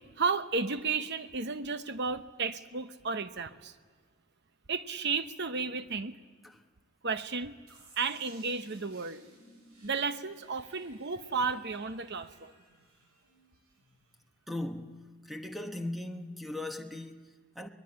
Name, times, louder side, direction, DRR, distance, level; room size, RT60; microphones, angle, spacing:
voice 1, 0.1-3.8 4.7-6.2 7.0-7.6 8.0-9.2 9.8-12.5, right 4 dB, 50° right, 0.9 m, -33 dB
sound 1, 7.7-14.5, right 2 dB, 80° right, 7.6 m, -60 dB
voice 2, 14.5-17.7, left 1 dB, ahead, 1.1 m, -39 dB
23.0 x 21.0 x 8.8 m
head